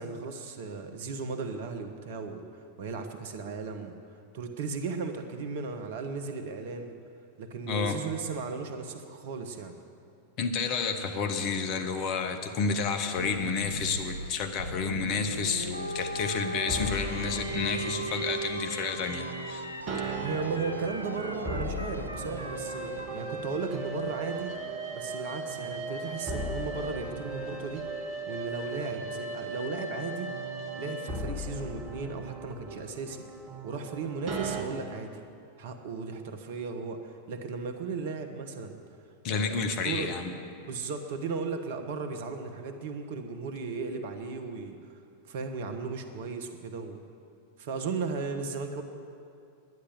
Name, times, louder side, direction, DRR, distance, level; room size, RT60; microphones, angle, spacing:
voice 1, 0.0-2.4 2.8-3.9 4.3-7.0 7.4-9.8 20.2-24.6 24.9-27.9 28.3-30.3 30.8-33.2 33.6-35.1 35.6-38.8 39.3-40.1 40.6-44.8 45.2-47.0 47.6-48.8, right 4 dB, 55° right, 7 dB, 1.1 m, -36 dB
voice 2, 7.7-8.0 10.4-19.7 39.2-40.3, left 5 dB, 40° left, 6 dB, 1.1 m, -30 dB
sound 1, 13.2-23.1, equal, 90° left, 0.6 m, -39 dB
sound 2, 16.5-34.6, right 2 dB, 35° right, 1.5 m, -37 dB
10.5 x 10.0 x 7.9 m, 2.5 s
figure-of-eight pair, 90°, 0 cm